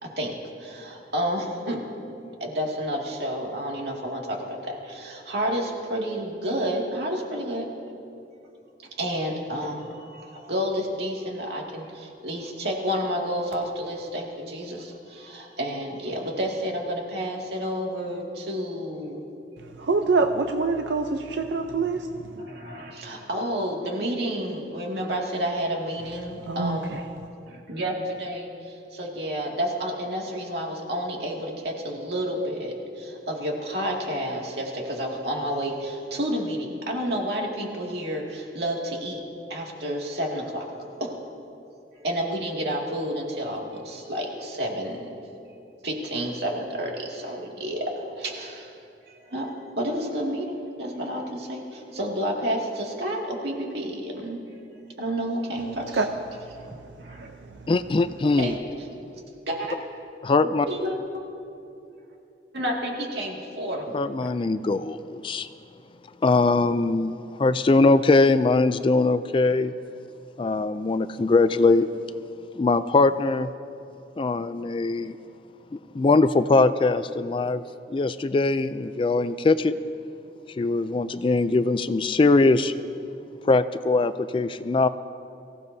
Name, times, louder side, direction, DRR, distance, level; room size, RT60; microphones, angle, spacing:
voice 1, 0.0-1.9 2.4-7.7 9.0-19.2 22.4-27.0 27.5-39.2 39.5-40.7 41.0-41.2 42.0-45.1 45.8-48.7 49.1-54.4 55.0-56.0 56.7-57.3 58.4-58.6 59.5-59.8 60.4-61.0 62.5-64.3, equal, 70° right, -1 dB, 2.2 m, -30 dB
voice 2, 19.6-22.5 26.4-27.3 55.9-57.7, right 3 dB, 90° right, 5 dB, 0.6 m, -27 dB
voice 3, 57.7-58.5 60.2-60.7 63.9-65.5 66.2-67.1 67.4-69.7 70.4-71.9 72.6-73.5 74.2-75.2 75.9-77.6 77.9-79.7 80.6-82.7 83.4-84.9, left 3 dB, 30° left, 13 dB, 0.3 m, -21 dB
24.0 x 15.5 x 2.7 m, 2.7 s
head